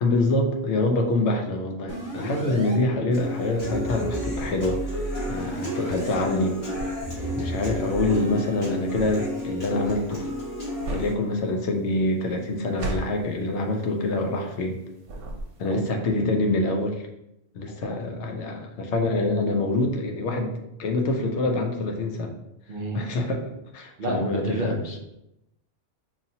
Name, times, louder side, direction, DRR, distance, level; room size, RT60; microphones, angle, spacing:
voice 1, 0.0-6.6 7.3-10.3 10.9-14.8 15.6-17.0 17.5-20.5 20.8-22.3 22.9-23.4 23.7-24.8, left 2 dB, 75° left, 3 dB, 0.9 m, -25 dB
sound 1, 1.9-2.7 3.6-6.1 7.0-8.7, equal, 20° left, 0.7 m, -34 dB
Human voice / Acoustic guitar, 3.1-11.1, equal, 55° left, 1.8 m, -32 dB
sound 2, 3.6-14.8 15.0-15.9, right 2 dB, 75° right, 1.0 m, -38 dB
voice 2, 22.7-23.0 24.0-25.0, right 1 dB, 55° right, 0 dB, 0.7 m, -31 dB
4.7 x 2.7 x 2.7 m, 0.85 s
omnidirectional pair, 1.2 m